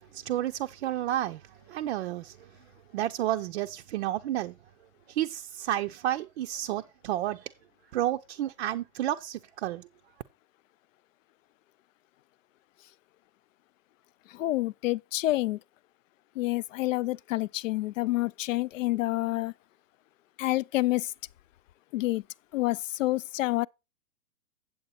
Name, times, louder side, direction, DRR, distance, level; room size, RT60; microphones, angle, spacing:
voice 1, 0.1-2.5 2.9-4.6 5.1-7.5 7.9-9.9, right 13 dB, 45° right, 0.6 m, -31 dB
voice 2, 14.3-15.6 16.4-19.5 20.4-21.1 21.9-22.2 22.5-23.7, left 17 dB, 60° left, 0.5 m, -28 dB
8.4 x 7.8 x 4.2 m
hypercardioid pair, 135°, 44 cm